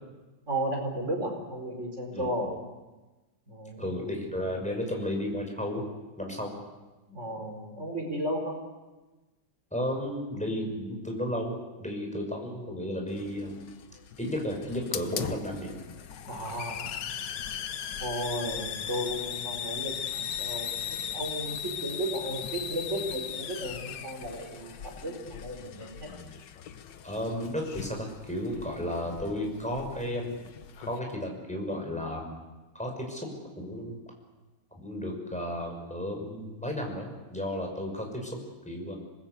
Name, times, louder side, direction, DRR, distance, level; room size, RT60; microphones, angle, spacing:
voice 1, 0.5-2.5 3.5-4.0 7.1-8.6 16.3-16.9 18.0-26.1, right 1 dB, 40° right, 2 dB, 5.0 m, -34 dB
voice 2, 3.8-5.8 6.2-6.5 9.7-13.6 14.2-15.8 27.0-30.3 30.9-32.4 32.7-33.3 33.6-34.0 34.8-38.3 38.7-38.9, left 1 dB, 5° left, 1 dB, 6.0 m, -33 dB
Hiss, 13.1-31.0, left 9 dB, 75° left, 1.6 m, -38 dB
27.0 x 20.0 x 8.2 m, 1.2 s
omnidirectional pair, 2.0 m